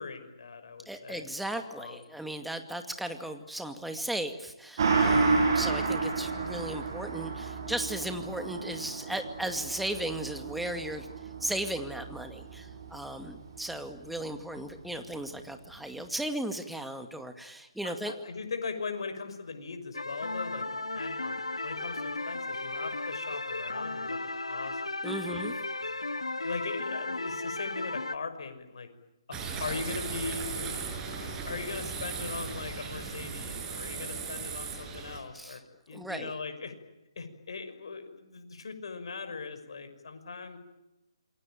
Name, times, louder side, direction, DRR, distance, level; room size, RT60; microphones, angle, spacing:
voice 1, 0.0-1.2 1.8-2.0 17.8-20.7 20.9-24.2 24.5-24.8 25.8-26.0 26.4-28.9 29.3-30.7 31.1-35.6 35.9-36.7 37.2-40.6, left 4 dB, 60° left, 8 dB, 5.9 m, -39 dB
voice 2, 0.9-18.1 25.0-25.6 35.3-35.6 35.9-36.4, right 1 dB, ahead, 6 dB, 2.2 m, -36 dB
Gong, 4.8-13.7 14.1-14.2, right 4 dB, 50° right, 6.9 m, -31 dB
sound 1, 19.9-28.2, left 2 dB, 90° left, 1.4 m, -35 dB
sound 2, 29.3-35.2, right 5 dB, 15° right, 5.9 m, -37 dB
27.5 x 23.5 x 9.1 m, 0.97 s
figure-of-eight pair, 140°, 3 cm